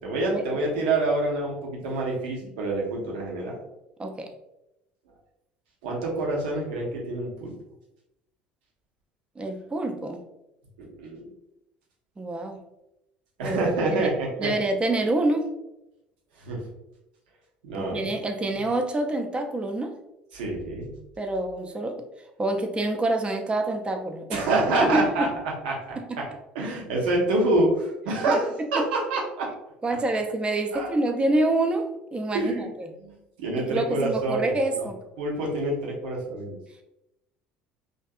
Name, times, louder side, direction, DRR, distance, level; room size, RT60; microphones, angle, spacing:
voice 1, 0.0-3.6 5.8-7.5 10.8-11.3 13.4-14.5 16.4-16.6 17.6-18.0 20.3-20.9 24.3-25.3 25.6-26.2 26.5-29.5 30.7-30.9 32.3-32.7 33.0-34.9 35.2-36.6, right 2 dB, 70° right, -2 dB, 0.7 m, -27 dB
voice 2, 9.4-10.2 12.2-12.6 13.4-13.6 13.9-14.1 14.4-15.5 17.7-19.9 21.2-22.0 22.4-24.4 24.9-25.3 26.0-26.2 28.3-28.4 29.8-31.9 32.1-32.9 33.7-35.0, right 2 dB, 20° right, 5 dB, 0.4 m, -27 dB
2.6 x 2.3 x 2.3 m, 0.89 s
figure-of-eight pair, 60°, 5 cm